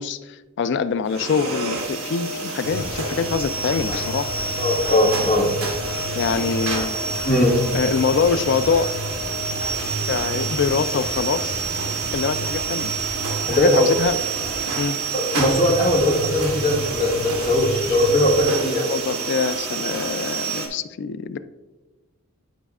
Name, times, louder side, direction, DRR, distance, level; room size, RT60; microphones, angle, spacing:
voice 1, 0.0-4.3 6.1-7.0 7.7-8.9 10.1-11.6 12.1-12.9 13.5-14.2 14.8-15.0 18.9-21.4, left 5 dB, 50° left, 13 dB, 0.3 m, -24 dB
sound 1, 1.0-20.7, right 4 dB, 65° right, 1.3 m, -28 dB
sound 2, 2.6-18.4, equal, 75° left, 1.1 m, -34 dB
voice 2, 4.6-5.5 5.8-6.0 6.4-6.8 7.3-7.6 13.5-13.9 15.1-18.9, left 1 dB, 35° left, -4 dB, 1.7 m, -20 dB
10.0 x 5.1 x 2.4 m, 1.1 s
head